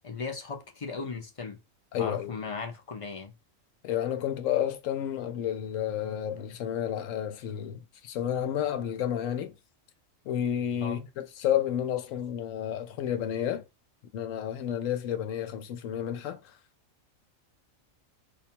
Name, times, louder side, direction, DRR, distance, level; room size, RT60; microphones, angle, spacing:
voice 1, 0.0-1.6 2.0-3.3 10.8-11.0, left 4 dB, 40° left, 0.4 m, -37 dB
voice 2, 1.9-2.4 3.8-9.5 10.2-11.1 11.4-13.6 14.1-16.6, left 10 dB, 75° left, 1.0 m, -31 dB
5.1 x 2.2 x 2.8 m
omnidirectional pair, 1.4 m